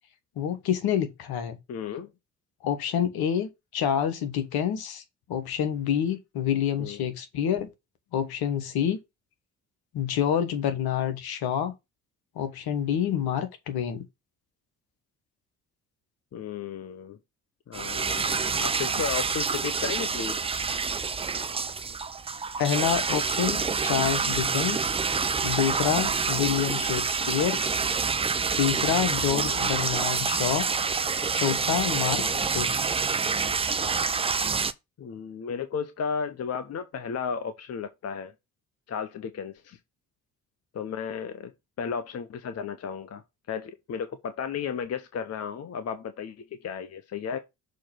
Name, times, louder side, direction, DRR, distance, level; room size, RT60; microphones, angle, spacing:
voice 1, 0.4-1.6 2.6-5.0 5.3-7.7 8.1-9.0 9.9-11.7 12.3-14.0 22.6-25.0 25.4-27.6 28.6-30.7 31.3-32.2 32.5-32.8, left 9 dB, 55° left, 1.3 m, -27 dB
voice 2, 1.7-2.1 6.8-7.0 16.3-17.2 17.7-20.4 26.4-26.8 29.3-29.6 32.1-32.5 35.0-38.3 38.9-39.8 40.7-41.5 41.8-47.4, left 6 dB, 35° left, 0.8 m, -34 dB
sound 1, 17.7-34.7, right 5 dB, 15° right, 0.5 m, -27 dB
6.4 x 3.1 x 5.8 m
figure-of-eight pair, 45°, 43 cm